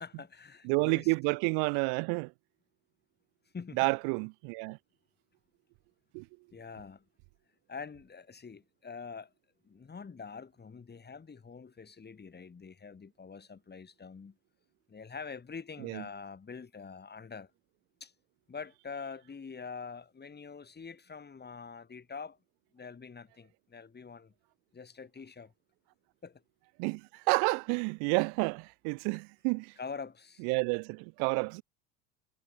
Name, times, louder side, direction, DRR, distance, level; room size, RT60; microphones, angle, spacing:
voice 1, 0.0-1.1 3.5-3.9 6.5-7.1 7.7-9.3 9.6-14.4 14.9-17.5 18.0-18.1 18.5-22.4 22.7-24.3 24.7-25.5 26.2-26.4 29.8-30.4, left 5 dB, 25° left, 4.0 m, -45 dB
voice 2, 0.6-2.3 3.8-4.8 6.1-6.2 15.8-16.0 26.8-29.7 30.4-31.6, right 38 dB, 65° right, 0.9 m, -30 dB
hypercardioid pair, 85°, 40 cm